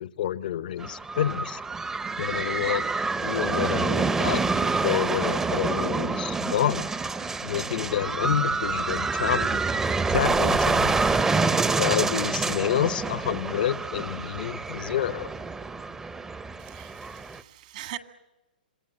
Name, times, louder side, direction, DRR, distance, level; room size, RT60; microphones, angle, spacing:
voice 1, 0.0-1.6 2.2-2.8 3.2-4.4 4.8-6.9 7.4-9.6 10.1-11.0 11.8-15.3, left 11 dB, 65° left, 0.9 m, -28 dB
sound 1, 0.8-17.4, right 4 dB, 10° right, 0.8 m, -27 dB
voice 2, 16.6-18.0, right 15 dB, 55° right, 1.9 m, -41 dB
27.5 x 21.0 x 8.7 m
hypercardioid pair, 135°, 5 cm